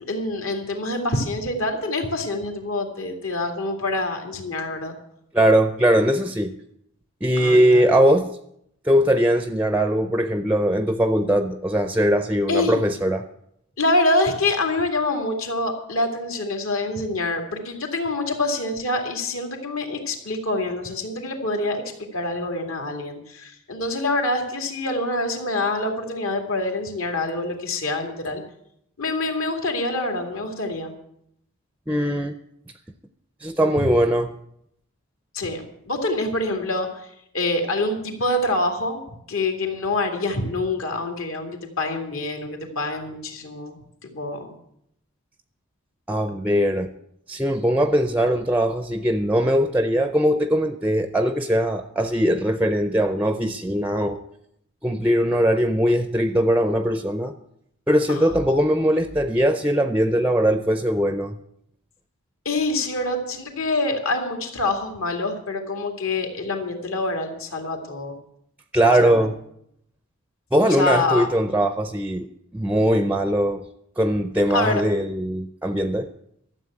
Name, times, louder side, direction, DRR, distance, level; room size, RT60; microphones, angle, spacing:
voice 1, 0.1-5.0 7.4-7.9 12.5-12.8 13.8-28.4 29.0-30.9 33.8-33.9 35.3-39.0 39.3-44.5 58.1-58.3 62.4-68.1 68.8-69.3 70.6-71.3 74.5-74.8, left 2 dB, 75° left, 3 dB, 2.4 m, -26 dB
voice 2, 5.3-6.5 7.2-8.3 8.8-13.2 31.9-32.4 33.4-34.3 46.1-46.9 47.3-54.2 54.8-57.3 57.9-61.4 68.7-69.4 70.5-72.3 72.5-73.6 74.0-76.1, equal, 5° right, 9 dB, 0.4 m, -20 dB
13.0 x 7.6 x 8.6 m, 0.74 s
head